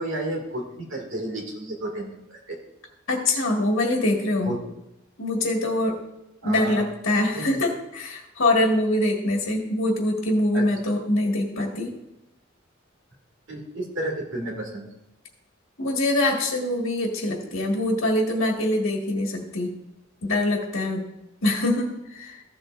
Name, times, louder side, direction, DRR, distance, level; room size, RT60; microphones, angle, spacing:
voice 1, 0.0-2.6 4.4-4.6 6.4-6.8 7.3-7.6 10.5-10.7 13.5-14.9, right 1 dB, 65° right, 1 dB, 2.1 m, -32 dB
voice 2, 3.1-4.5 5.2-6.0 6.4-11.9 15.8-19.7 20.2-21.0 21.4-22.4, left 1 dB, 70° left, 0 dB, 1.5 m, -24 dB
14.5 x 7.5 x 2.5 m, 0.90 s
head